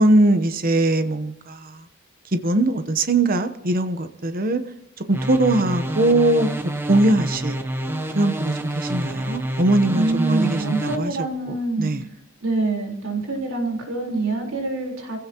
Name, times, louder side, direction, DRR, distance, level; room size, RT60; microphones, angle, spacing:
voice 1, 0.0-1.8 2.3-4.6 5.1-6.5 6.9-7.6 8.1-11.2 11.5-12.0, right 2 dB, 45° right, 9 dB, 0.9 m, -21 dB
sound 1, 5.1-11.0, right 1 dB, 10° right, 1.1 m, -28 dB
voice 2, 9.9-11.9 12.4-15.2, right 3 dB, 80° right, 0 dB, 4.1 m, -25 dB
28.0 x 16.0 x 2.9 m, 0.79 s
head